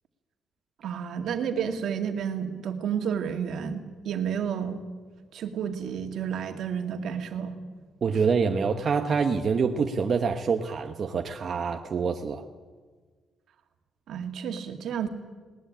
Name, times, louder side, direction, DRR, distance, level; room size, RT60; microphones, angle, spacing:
voice 1, 0.8-4.8 5.3-7.6 14.1-15.1, right 7 dB, 70° right, 5 dB, 2.3 m, -31 dB
voice 2, 8.0-12.4, right 5 dB, 45° right, 4 dB, 1.1 m, -26 dB
20.5 x 19.5 x 8.8 m, 1.5 s
cardioid pair, 130°, 0 cm